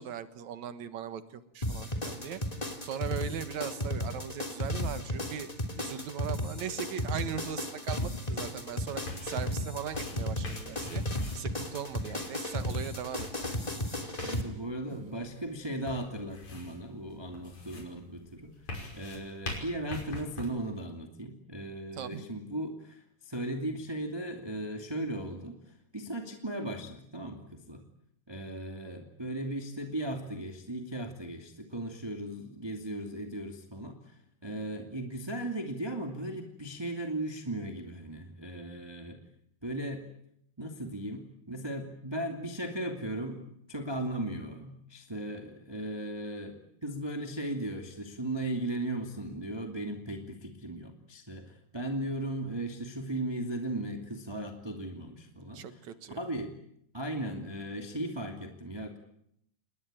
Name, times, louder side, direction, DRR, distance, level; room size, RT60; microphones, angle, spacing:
voice 1, 0.0-2.4 2.8-5.5 5.8-11.0 11.3-13.5 14.9-15.1 21.9-22.3 55.5-56.3, right 9 dB, 65° right, 12 dB, 2.6 m, -39 dB
sound 1, 1.6-14.4, left 1 dB, 10° left, 2.8 m, -34 dB
sound 2, 8.2-20.5, left 2 dB, 60° left, 7.1 m, -45 dB
voice 2, 14.2-18.5 18.9-27.8 28.3-39.2 39.6-40.1 40.6-43.4 43.7-55.8 56.1-56.5 56.9-59.0, right 1 dB, 10° right, 4 dB, 2.2 m, -37 dB
29.0 x 21.0 x 9.1 m, 0.75 s
omnidirectional pair, 3.7 m